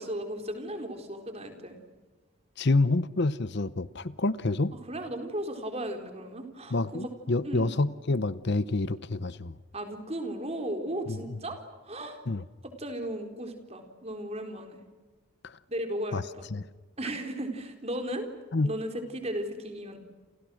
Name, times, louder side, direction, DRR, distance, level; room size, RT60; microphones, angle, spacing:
voice 1, 0.0-1.8 4.7-7.1 7.4-7.7 9.7-12.2 12.6-14.8 15.7-16.5 17.0-18.3 18.6-20.0, right 1 dB, 30° right, 6 dB, 4.1 m, -36 dB
voice 2, 2.6-4.7 6.7-9.5 11.1-11.4 12.3-12.4 15.4-15.6 16.1-16.2 16.5-16.7 18.5-18.7, left 2 dB, 50° left, 16 dB, 0.8 m, -28 dB
29.0 x 28.5 x 6.4 m, 1.3 s
head